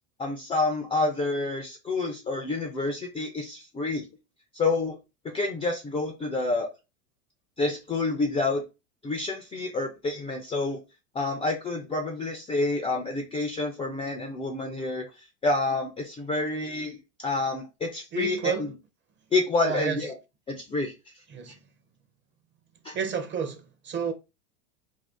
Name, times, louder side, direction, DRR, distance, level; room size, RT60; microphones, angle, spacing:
voice 1, 0.2-4.0 4.5-5.0 5.2-6.7 7.6-8.6 9.0-10.8 11.1-18.7 19.3-20.1 20.5-20.9 22.8-23.0, left 3 dB, 15° left, 0.3 m, -28 dB
voice 2, 18.1-18.7 19.6-20.0 21.3-21.6 22.9-24.1, right 7 dB, 25° right, 0.6 m, -30 dB
2.6 x 2.3 x 3.4 m
hypercardioid pair, 95°, 43 cm